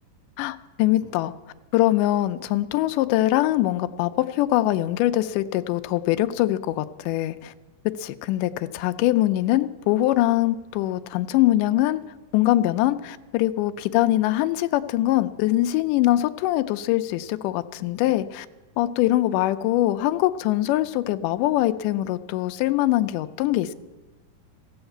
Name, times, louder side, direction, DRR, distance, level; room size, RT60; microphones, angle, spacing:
voice 1, 0.4-1.3 1.7-7.5 8.0-12.0 12.3-18.5 18.8-23.7, left 15 dB, 80° left, 10 dB, 2.0 m, -23 dB
15.0 x 7.2 x 7.9 m, 1.2 s
omnidirectional pair, 4.1 m